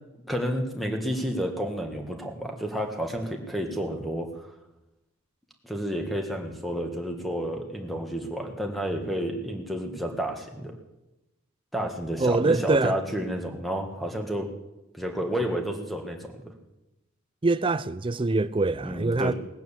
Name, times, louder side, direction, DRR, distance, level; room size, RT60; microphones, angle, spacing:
voice 1, 0.3-4.3 5.6-10.7 11.7-14.5 14.9-16.5 18.8-19.3, equal, ahead, 1.6 m, -30 dB
voice 2, 12.2-13.0 17.4-19.3, right 3 dB, 25° right, 0.4 m, -24 dB
18.5 x 9.2 x 7.2 m
head